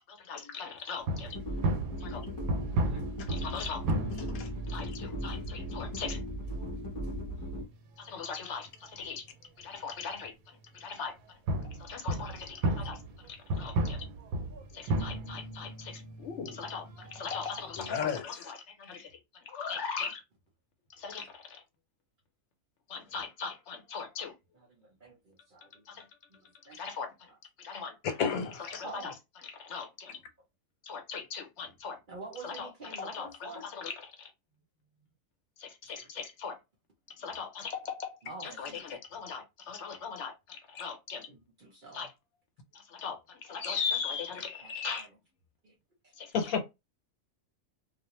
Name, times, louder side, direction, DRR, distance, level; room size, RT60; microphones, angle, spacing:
voice 1, 0.1-1.4 2.0-2.2 3.3-3.8 4.7-6.2 8.0-9.2 9.6-10.3 10.7-11.2 11.6-14.0 14.7-19.1 19.5-20.2 21.0-21.6 22.9-24.3 25.9-26.1 26.7-27.1 27.6-28.0 28.8-29.1 29.4-30.2 30.8-32.0 32.4-34.3 35.6-36.6 37.2-41.3 41.9-42.1 42.7-45.1 46.2-46.3, left 5 dB, 65° left, 0.9 m, -39 dB
sound 1, 1.0-9.0 9.3-9.4 10.2-10.3 11.5-17.9, right 1 dB, 85° right, 1.0 m, -35 dB
sound 2, 1.3-7.6, equal, 20° left, 0.7 m, -37 dB
voice 2, 4.1-4.5 17.8-18.5 28.0-28.8 38.7-38.8 40.8-40.9 43.6-43.7 44.7-45.0 46.3-46.6, left 6 dB, 90° left, 1.1 m, -33 dB
voice 3, 24.8-25.2 26.3-26.8 28.8-29.1 32.1-33.6 36.0-36.1 38.2-38.8 41.3-42.1 44.4-45.1 45.6-45.7 46.2-46.3, right 3 dB, 45° right, 0.7 m, -47 dB
2.4 x 2.0 x 3.0 m
omnidirectional pair, 1.4 m